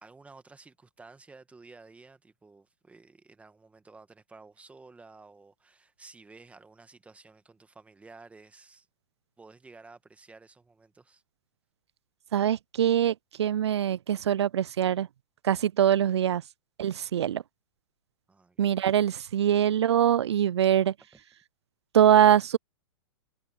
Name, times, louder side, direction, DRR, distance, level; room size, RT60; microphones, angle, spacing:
voice 1, 0.0-8.9 9.4-11.2 18.3-18.8, right 3 dB, 10° right, 1.8 m, -53 dB
voice 2, 12.3-15.1 15.4-16.4 16.8-17.4 18.6-20.9 21.9-22.6, right 10 dB, 80° right, 0.4 m, -23 dB
hypercardioid pair, 115°, 14 cm